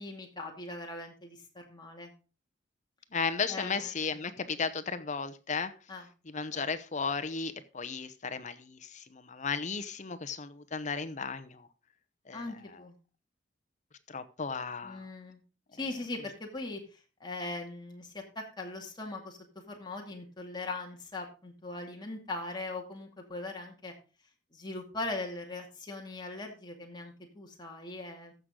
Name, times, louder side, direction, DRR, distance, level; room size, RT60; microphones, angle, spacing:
voice 1, 0.0-2.1 3.5-4.2 5.9-6.1 6.5-6.7 12.3-13.0 14.8-15.4 15.8-16.8 17.2-19.4 19.7-23.9 24.5-28.3, left 2 dB, 25° left, 1 dB, 2.3 m, -40 dB
voice 2, 3.1-5.7 6.3-11.6 12.3-12.4 14.1-15.0, left 5 dB, 40° left, 10 dB, 0.8 m, -35 dB
14.5 x 6.3 x 3.7 m, 0.33 s
head